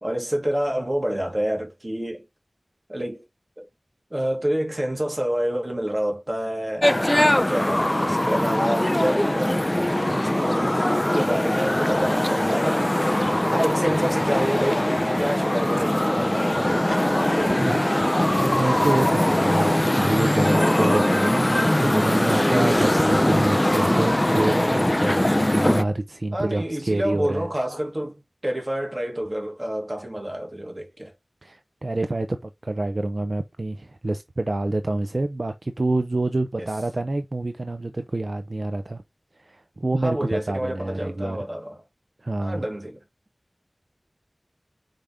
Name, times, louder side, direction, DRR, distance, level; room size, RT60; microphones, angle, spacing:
voice 1, 0.0-2.2 2.9-3.2 3.6-3.7 4.1-7.0 7.3-13.0 13.5-17.1 26.3-31.1 36.6-36.7 40.0-41.8 42.4-43.0, equal, 35° right, 2.8 m, -28 dB
sound 1, 6.8-25.8, left 1 dB, 25° left, 0.5 m, -21 dB
voice 2, 17.5-27.5 31.4-39.0 39.4-41.4 42.2-42.7, right 2 dB, 65° right, 0.7 m, -27 dB
5.9 x 5.2 x 3.6 m
wide cardioid pair, 40°, 0 cm